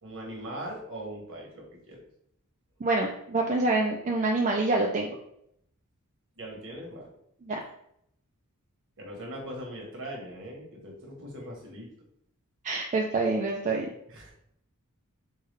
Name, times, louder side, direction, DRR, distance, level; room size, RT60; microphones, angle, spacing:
voice 1, 0.0-2.0 6.4-7.1 9.0-11.9 14.1-14.3, right 1 dB, 60° right, -1 dB, 1.2 m, -40 dB
voice 2, 2.8-5.1 7.5-7.6 12.6-13.9, right 2 dB, 35° right, 0 dB, 0.4 m, -26 dB
4.6 x 2.3 x 3.3 m, 0.73 s
head